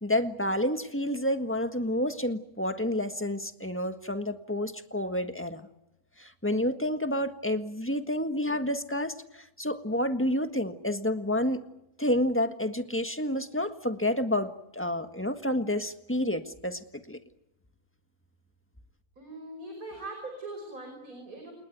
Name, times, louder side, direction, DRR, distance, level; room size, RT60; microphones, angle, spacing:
voice 1, 0.0-5.6 6.2-11.6 12.0-17.2, left 1 dB, 10° left, 8 dB, 1.5 m, -29 dB
voice 2, 19.2-21.5, right 2 dB, 65° right, 4 dB, 6.0 m, -41 dB
29.0 x 19.5 x 9.4 m, 0.85 s
omnidirectional pair, 1.6 m